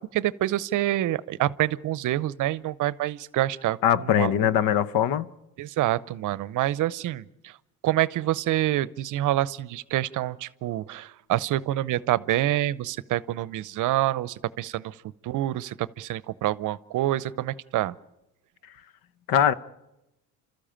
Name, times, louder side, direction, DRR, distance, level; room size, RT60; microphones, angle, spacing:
voice 1, 0.1-4.3 5.6-7.6 7.8-15.0 15.2-17.9, right 14 dB, 50° right, 0.7 m, -27 dB
voice 2, 3.8-5.3 19.3-19.5, left 10 dB, 65° left, 1.0 m, -21 dB
30.0 x 13.5 x 8.9 m
supercardioid pair, 100°, 39 cm